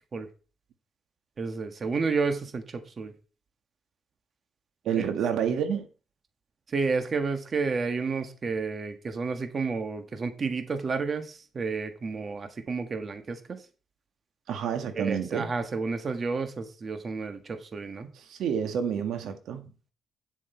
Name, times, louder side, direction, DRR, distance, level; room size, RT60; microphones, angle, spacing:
voice 1, 1.4-3.1 5.0-5.1 6.7-13.6 14.9-18.1, right 4 dB, 40° right, 1.4 m, -31 dB
voice 2, 4.9-5.9 14.5-15.5 18.2-19.7, right 8 dB, 75° right, 1.6 m, -29 dB
9.2 x 7.8 x 4.5 m
cardioid pair, 90°, 0 cm